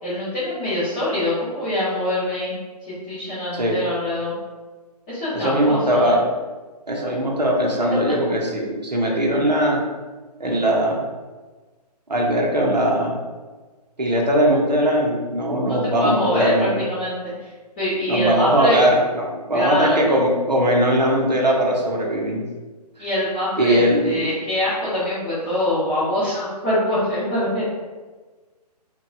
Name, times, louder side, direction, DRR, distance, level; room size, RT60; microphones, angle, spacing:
voice 1, 0.0-2.5 2.8-4.3 5.1-6.2 7.7-8.0 15.7-18.8 19.5-20.0 23.0-27.7, left 1 dB, 15° left, -12 dB, 0.4 m, -24 dB
voice 2, 5.3-6.2 6.9-9.8 10.4-11.0 12.1-13.2 14.0-16.8 18.1-22.4 23.6-24.3, equal, 85° right, -1 dB, 0.7 m, -20 dB
2.9 x 2.2 x 2.3 m, 1.3 s
figure-of-eight pair, 135°, 21 cm